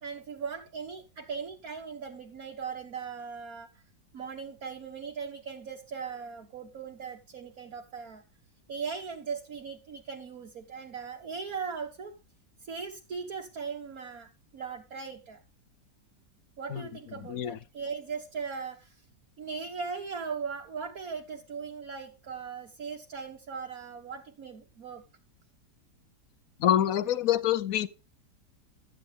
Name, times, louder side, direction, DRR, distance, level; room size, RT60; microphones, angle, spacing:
voice 1, 0.0-3.7 4.1-8.2 8.7-12.2 12.6-15.4 16.6-19.0 19.4-25.0, right 5 dB, 55° right, 1.8 m, -39 dB
voice 2, 17.2-17.6 26.6-27.9, left 11 dB, 65° left, 1.0 m, -26 dB
13.0 x 8.9 x 3.5 m
omnidirectional pair, 1.9 m